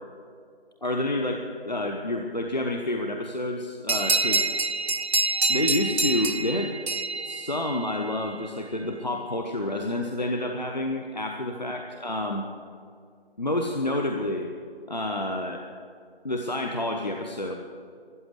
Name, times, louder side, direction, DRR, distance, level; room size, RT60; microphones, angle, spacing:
voice 1, 0.8-4.5 5.5-6.8 7.2-12.5 13.4-14.5 14.9-15.6 16.2-17.5, left 1 dB, 45° left, 3 dB, 0.9 m, -29 dB
sound 1, 3.9-8.1, right 3 dB, 90° right, 0.9 m, -26 dB
13.5 x 9.0 x 9.5 m, 2.2 s
figure-of-eight pair, 170°, 31 cm